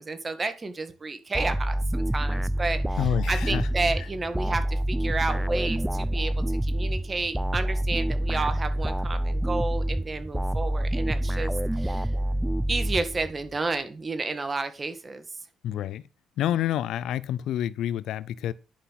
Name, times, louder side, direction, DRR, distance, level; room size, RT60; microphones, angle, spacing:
voice 1, 0.0-3.0 3.3-6.3 6.6-12.1 12.7-15.2, right 3 dB, 30° right, 1.9 m, -31 dB
sound 1, 1.3-13.5, right 1 dB, 5° right, 0.4 m, -27 dB
voice 2, 3.0-3.7 4.0-4.1 15.6-16.0 16.4-18.5, left 11 dB, 80° left, 0.5 m, -28 dB
10.5 x 5.8 x 5.8 m
cardioid pair, 90°, 0 cm